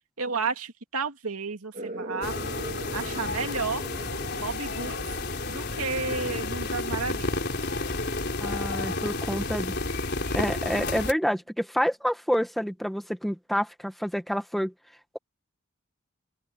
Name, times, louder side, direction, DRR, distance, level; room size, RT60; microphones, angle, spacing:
voice 1, 0.2-2.3 2.9-3.8 4.4-5.0 5.5-7.3, right 4 dB, 85° right, 2.4 m, -32 dB
sound 1, 1.7-8.9, right 1 dB, 40° right, 1.7 m, -42 dB
sound 2, 2.2-11.1, left 2 dB, 50° left, 4.0 m, -31 dB
voice 2, 8.4-9.8 10.3-14.7, equal, ahead, 1.3 m, -28 dB
open air
head